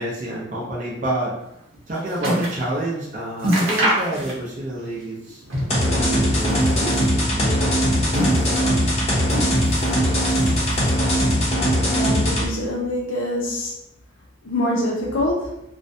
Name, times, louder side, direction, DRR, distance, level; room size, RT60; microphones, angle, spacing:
voice 1, 0.0-1.3 1.9-5.4 5.8-8.8, right 1 dB, 40° right, -5 dB, 0.5 m, -29 dB
sound 1, 1.5-2.7 3.0-3.1 3.4-4.7 5.0-5.9 6.3-7.1 7.8-8.8 9.3-10.0 10.3-11.0 11.7-11.8, equal, 85° right, 0.8 m, -25 dB
sound 2, 5.7-12.5, equal, 35° left, 0.6 m, -20 dB
voice 2, 11.8-13.7 14.4-15.6, left 1 dB, 85° left, -2 dB, 0.5 m, -25 dB
2.5 x 2.1 x 2.6 m, 0.79 s
head